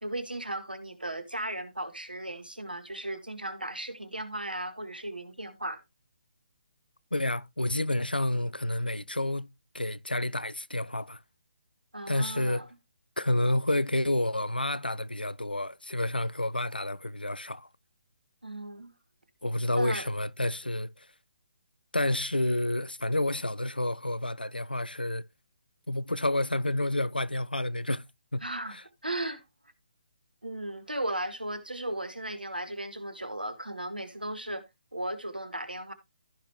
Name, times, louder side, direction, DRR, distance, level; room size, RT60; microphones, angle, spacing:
voice 1, 0.0-5.8 11.9-12.7 18.4-18.9 19.7-20.1 28.4-28.8 29.0-29.4 30.4-34.6 34.9-35.9, right 1 dB, 80° right, 1.7 m, -36 dB
voice 2, 7.1-9.5 9.7-11.2 12.1-12.7 13.2-17.7 19.4-21.1 21.9-25.2 25.9-28.1 28.3-28.4 28.7-28.8, left 1 dB, 85° left, 0.5 m, -29 dB
15.0 x 5.3 x 3.0 m
figure-of-eight pair, 140°, 5 cm